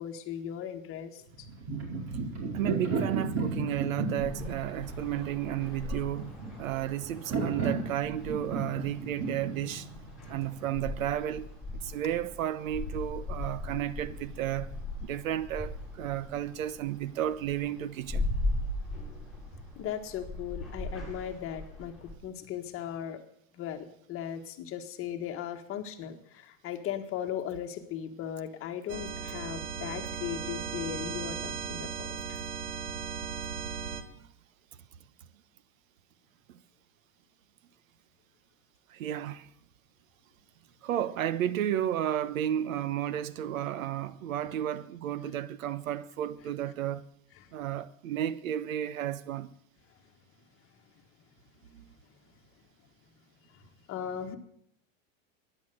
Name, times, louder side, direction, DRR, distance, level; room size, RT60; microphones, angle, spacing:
voice 1, 0.0-1.5 19.7-23.2 23.5-32.4 47.4-47.5 53.5-53.6 53.9-54.4, left 9 dB, 35° left, 1.7 m, -38 dB
sound 1, 1.3-11.0, right 4 dB, 40° right, 4.6 m, -34 dB
voice 2, 2.5-6.3 6.6-9.9 10.3-14.7 15.0-18.3 34.1-34.3 36.5-36.6 38.9-39.5 40.8-47.0 47.5-49.5 51.7-51.9, right 11 dB, 90° right, 1.1 m, -33 dB
sound 2, 4.2-22.1, left 2 dB, ahead, 7.2 m, -39 dB
sound 3, 28.9-34.0, right 6 dB, 70° right, 2.2 m, -37 dB
14.5 x 10.5 x 7.9 m
supercardioid pair, 145°, 39 cm